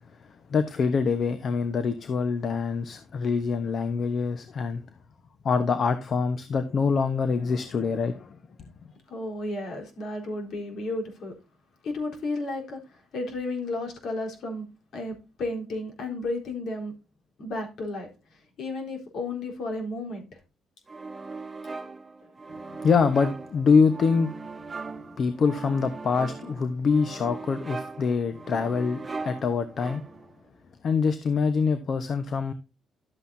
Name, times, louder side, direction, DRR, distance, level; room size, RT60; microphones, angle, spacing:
voice 1, 0.5-4.8 5.4-8.4 22.8-24.3 24.7-24.8 25.2-30.0 30.8-32.5, left 5 dB, 55° left, 1.1 m, -25 dB
voice 2, 9.1-11.3 11.8-16.9 17.4-20.4 22.2-22.3, left 2 dB, 70° left, 4.1 m, -33 dB
sound 1, 20.9-30.4, right 4 dB, 25° right, 1.0 m, -39 dB
12.0 x 8.0 x 2.7 m
cardioid pair, 90°, 0 cm